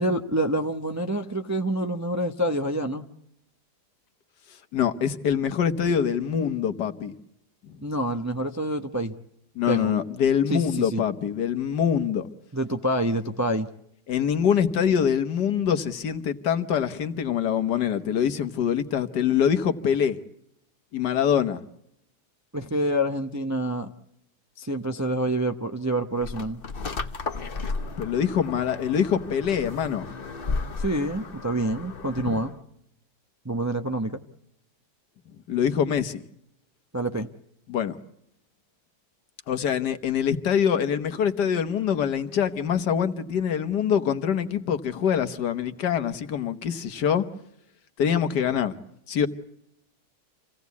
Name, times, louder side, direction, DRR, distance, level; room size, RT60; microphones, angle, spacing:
voice 1, 0.0-3.0 7.8-9.1 9.7-9.9 10.5-11.0 12.5-13.7 22.5-23.9 24.6-26.6 30.8-32.5 33.4-34.2 36.9-37.3, right 1 dB, 15° right, 0.5 m, -27 dB
voice 2, 4.7-7.1 9.5-12.3 14.1-20.2 20.9-21.6 28.0-30.1 35.5-36.2 37.7-38.0 39.5-47.2 48.0-48.7 49.1-49.3, left 8 dB, 80° left, 1.7 m, -24 dB
sound 1, 26.2-32.6, left 4 dB, 40° left, 1.1 m, -34 dB
27.5 x 17.0 x 8.3 m
omnidirectional pair, 1.8 m